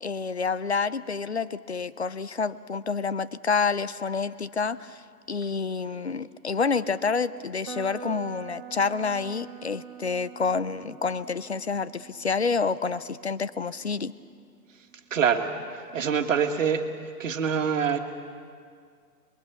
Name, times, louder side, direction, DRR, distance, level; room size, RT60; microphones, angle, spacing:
voice 1, 0.0-5.0 5.3-14.1, left 5 dB, 45° left, 16 dB, 0.5 m, -28 dB
sound 1, 7.6-15.6, right 6 dB, 15° right, 1.3 m, -45 dB
voice 2, 15.1-15.5 15.9-16.8 17.2-18.0, right 7 dB, 50° right, 5 dB, 1.9 m, -24 dB
26.5 x 22.0 x 7.0 m, 2.2 s
hypercardioid pair, 180°, 48 cm